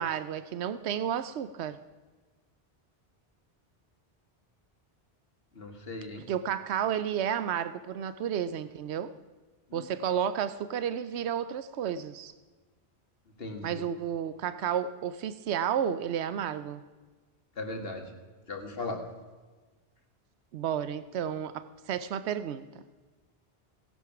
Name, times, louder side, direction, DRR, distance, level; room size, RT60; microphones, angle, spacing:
voice 1, 0.0-1.8 6.3-9.1 9.7-12.3 13.6-16.8 20.5-22.8, right 9 dB, 85° right, 14 dB, 0.9 m, -32 dB
voice 2, 5.6-6.3 9.7-9.9 13.4-13.8 17.6-18.1 18.5-19.0, left 2 dB, 65° left, 4 dB, 2.2 m, -37 dB
17.0 x 11.0 x 5.9 m, 1.3 s
omnidirectional pair, 1.1 m